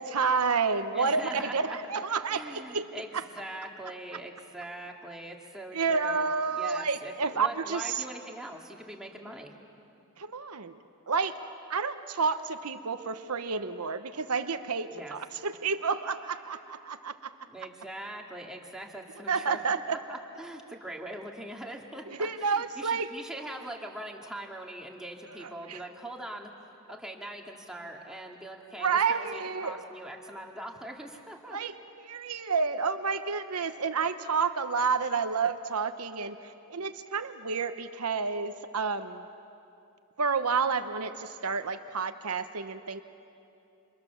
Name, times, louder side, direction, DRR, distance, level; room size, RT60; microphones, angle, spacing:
voice 1, 0.0-2.8 5.7-8.0 10.2-10.7 11.1-17.1 19.3-20.0 22.2-23.1 25.4-25.8 28.8-29.8 31.5-31.7 32.0-39.2 40.2-43.0, right 5 dB, 85° right, 9 dB, 1.0 m, -30 dB
voice 2, 0.9-1.8 2.3-9.5 14.9-15.1 17.5-19.6 19.9-26.5 26.9-31.6, right 1 dB, 5° right, 0 dB, 2.4 m, -42 dB
29.5 x 27.5 x 7.1 m, 2.6 s
head